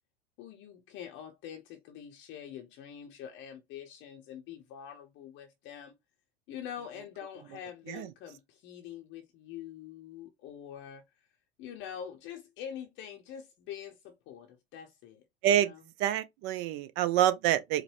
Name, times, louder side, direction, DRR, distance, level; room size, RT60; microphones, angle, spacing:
voice 1, 0.4-5.9 6.5-11.0 11.6-15.2 15.6-15.8, left 9 dB, 35° left, 0.7 m, -45 dB
voice 2, 16.0-17.8, right 11 dB, 40° right, 0.6 m, -27 dB
4.7 x 2.1 x 3.2 m
figure-of-eight pair, 85°, 31 cm